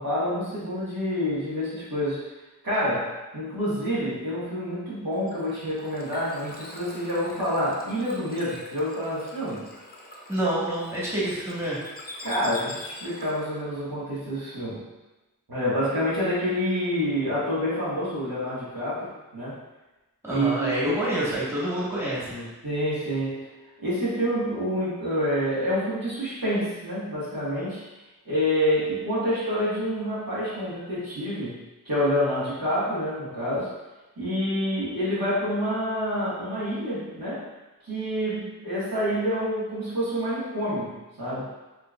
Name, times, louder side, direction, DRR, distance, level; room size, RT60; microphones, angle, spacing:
voice 1, 0.0-2.3 2.6-9.7 12.2-14.9 15.5-19.6 20.3-21.0 22.6-23.5 23.8-27.8 28.2-31.6 31.8-33.7 34.2-37.5 37.8-41.5, equal, 75° right, -9 dB, 1.4 m, -27 dB
Bird / Water, 5.1-13.6, left 1 dB, 25° left, 0.6 m, -43 dB
voice 2, 10.3-11.8 20.2-22.5, right 1 dB, 5° right, -8 dB, 1.3 m, -27 dB
4.3 x 3.2 x 2.3 m, 1.1 s
wide cardioid pair, 45°, 35 cm